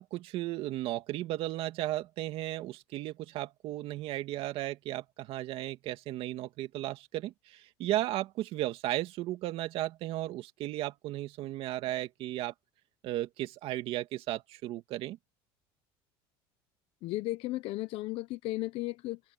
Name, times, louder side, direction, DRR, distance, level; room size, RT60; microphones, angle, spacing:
voice 1, 0.0-12.5 13.0-15.2, right 15 dB, 60° right, 2.3 m, -35 dB
voice 2, 17.0-19.2, left 18 dB, 60° left, 0.9 m, -35 dB
supercardioid pair, 120°, 11 cm